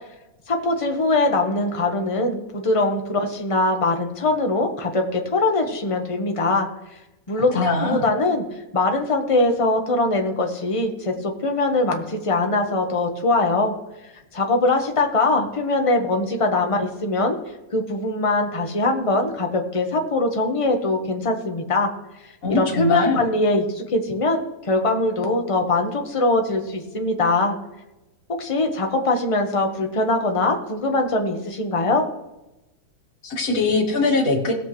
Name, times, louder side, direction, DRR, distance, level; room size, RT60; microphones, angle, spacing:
voice 1, 0.5-6.7 7.3-8.4 8.7-13.7 14.3-17.4 17.7-21.9 22.5-27.6 28.4-32.1, left 2 dB, 20° left, 3 dB, 1.1 m, -22 dB
voice 2, 7.5-8.0 22.4-23.2 33.2-34.5, left 3 dB, 50° left, -1 dB, 2.3 m, -21 dB
18.0 x 7.6 x 3.2 m, 0.97 s
omnidirectional pair, 2.0 m